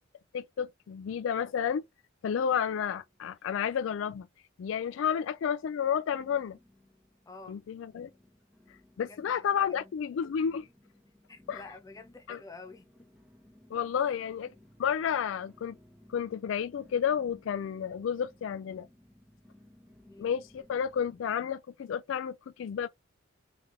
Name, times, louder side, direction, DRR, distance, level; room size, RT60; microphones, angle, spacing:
voice 1, 0.3-1.8 2.2-4.3 4.6-6.6 7.5-8.1 9.0-10.7 11.5-11.6 12.3-12.4 13.7-14.5 14.8-15.8 16.1-18.9 20.2-22.9, left 8 dB, 65° left, 0.3 m, -31 dB
sound 1, 3.0-3.9 4.1-4.8 5.3-5.4 6.1-21.3, left 1 dB, 5° right, 1.2 m, -60 dB
voice 2, 7.3-7.6 9.0-9.9 11.3-12.9 20.1-20.3, left 3 dB, 15° left, 0.6 m, -49 dB
3.4 x 3.4 x 3.5 m
head